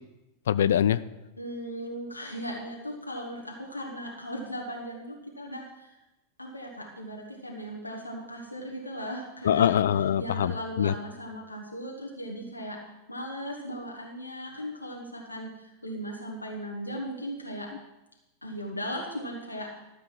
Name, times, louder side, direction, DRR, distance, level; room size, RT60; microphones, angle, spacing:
voice 1, 0.5-1.0 9.4-10.9, left 9 dB, 60° left, 16 dB, 0.4 m, -23 dB
voice 2, 1.4-6.0 6.4-9.7 10.2-12.8 13.1-17.7 18.4-19.8, equal, 85° left, -1 dB, 1.5 m, -37 dB
13.0 x 6.8 x 5.8 m, 0.99 s
figure-of-eight pair, 90°, 0 cm